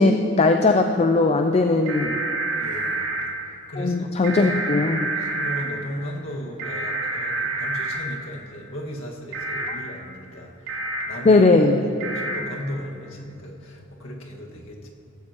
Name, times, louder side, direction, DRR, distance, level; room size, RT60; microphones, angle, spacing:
voice 1, 0.0-2.2 3.8-5.1 11.2-11.8, left 3 dB, 30° left, 5 dB, 0.4 m, -18 dB
sound 1, 1.9-3.2 4.2-5.6 6.6-8.0 9.3-9.7 10.7-11.0 12.0-12.4, right 2 dB, 85° right, 2.3 m, -28 dB
voice 2, 2.5-3.1 3.7-4.0 4.5-4.6 5.1-10.5 11.0-11.4 11.8-14.9, equal, 80° left, -1 dB, 1.8 m, -36 dB
16.5 x 15.5 x 3.0 m, 2.7 s
head